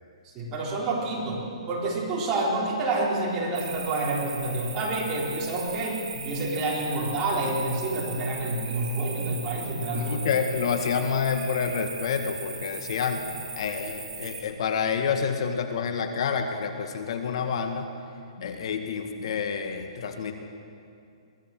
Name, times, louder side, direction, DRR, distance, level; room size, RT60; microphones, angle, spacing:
voice 1, 0.2-6.0 6.2-10.3, right 2 dB, 20° right, -4 dB, 4.0 m, -28 dB
sound 1, 3.5-14.4, right 5 dB, 80° right, 5.4 m, -39 dB
voice 2, 9.9-17.9 18.4-20.3, left 6 dB, 55° left, 6 dB, 1.8 m, -28 dB
22.5 x 15.5 x 7.6 m, 2.5 s
hypercardioid pair, 160°, 3 cm